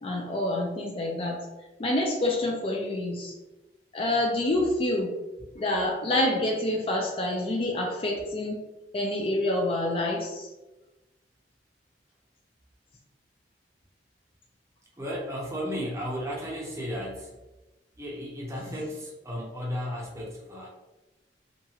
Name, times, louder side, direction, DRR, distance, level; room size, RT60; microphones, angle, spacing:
voice 1, 0.0-1.4 1.8-3.3 3.9-5.1 5.6-8.6 8.9-10.5, left 1 dB, 30° left, 0 dB, 0.3 m, -27 dB
voice 2, 15.0-17.3 18.0-20.7, equal, 15° right, -3 dB, 0.6 m, -34 dB
2.9 x 2.4 x 2.7 m, 1.1 s
head